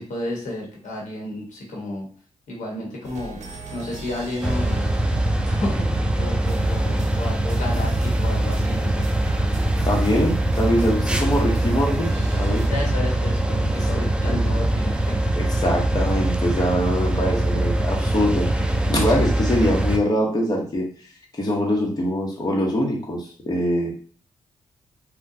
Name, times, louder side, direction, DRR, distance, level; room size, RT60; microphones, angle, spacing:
voice 1, 0.0-2.1 2.5-3.4 3.7-4.9 5.5-9.1 12.7-15.3 17.1-17.7, left 1 dB, 85° left, -2 dB, 1.1 m, -32 dB
A Brand New Start, 3.0-12.7, right 2 dB, 65° right, 0.7 m, -39 dB
sound 1, 4.4-20.0, right 1 dB, 10° right, 0.3 m, -22 dB
voice 2, 9.8-12.6 13.9-14.4 15.3-20.9 21.3-23.9, equal, 30° left, -1 dB, 0.9 m, -23 dB
3.7 x 2.2 x 2.7 m, 0.43 s
cardioid pair, 75°, 13 cm